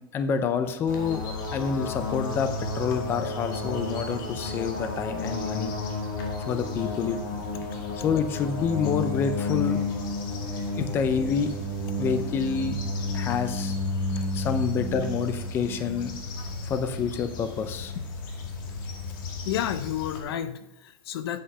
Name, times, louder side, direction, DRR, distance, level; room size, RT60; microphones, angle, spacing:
voice 1, 0.1-5.7 6.5-7.2 8.0-9.8 10.8-11.5 12.0-12.8 13.1-13.8 14.3-16.1 16.6-17.9, left 6 dB, 20° left, 10 dB, 0.5 m, -28 dB
sound 1, 0.9-20.2, left 2 dB, 55° left, 2.1 m, -32 dB
voice 2, 14.0-14.3 16.4-16.6 19.4-21.4, left 11 dB, 80° left, 12 dB, 0.9 m, -32 dB
8.6 x 8.0 x 5.4 m, 0.91 s
supercardioid pair, 175°, 13 cm